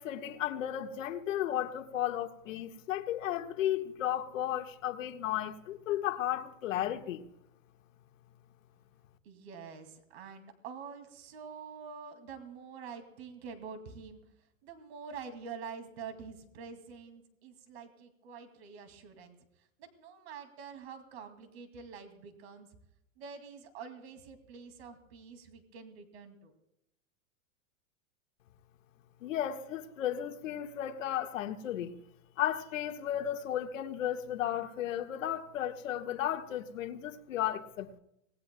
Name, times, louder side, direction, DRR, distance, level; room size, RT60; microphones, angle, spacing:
voice 1, 0.0-7.3 29.2-32.0 32.4-38.0, left 11 dB, 80° left, 1.7 m, -34 dB
voice 2, 9.2-14.2 14.6-19.4 19.8-22.7 23.2-26.5, right 6 dB, 55° right, 2.6 m, -47 dB
25.5 x 20.0 x 2.3 m
supercardioid pair, 180°, 38 cm